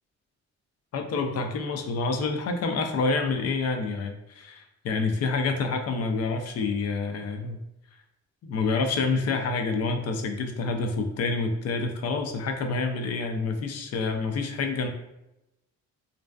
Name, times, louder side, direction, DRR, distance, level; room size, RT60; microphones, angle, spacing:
voice 1, 0.9-7.6 8.4-14.9, left 4 dB, 55° left, 5 dB, 0.5 m, -28 dB
2.5 x 2.3 x 2.2 m, 0.91 s
cardioid pair, 90°, 30 cm